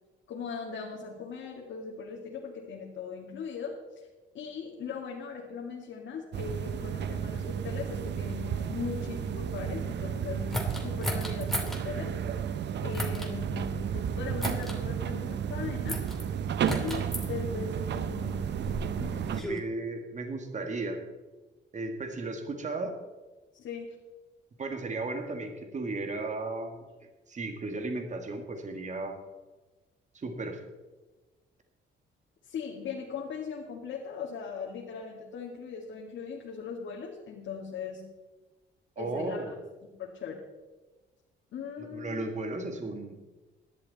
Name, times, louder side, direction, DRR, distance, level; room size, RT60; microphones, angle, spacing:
voice 1, 0.3-4.1 4.3-12.1 12.8-16.0 16.6-18.5 19.0-19.4 23.5-23.9 32.4-38.1 39.0-39.4 40.0-40.4 41.5-42.2, left 6 dB, 70° left, -2 dB, 2.2 m, -39 dB
sound 1, 6.3-19.4, right 8 dB, 60° right, 0.8 m, -33 dB
sound 2, 10.5-11.8 12.9-13.3 14.4-14.8 15.9-16.2 16.7-17.3 18.2-19.6, left 1 dB, ahead, 2.8 m, -34 dB
voice 2, 19.3-21.0 21.7-23.0 24.6-26.9 27.3-29.2 30.1-30.6 39.0-39.5 41.8-43.2, right 2 dB, 35° right, 5 dB, 2.0 m, -35 dB
17.0 x 11.5 x 4.2 m, 1.2 s
cardioid pair, 90°, 20 cm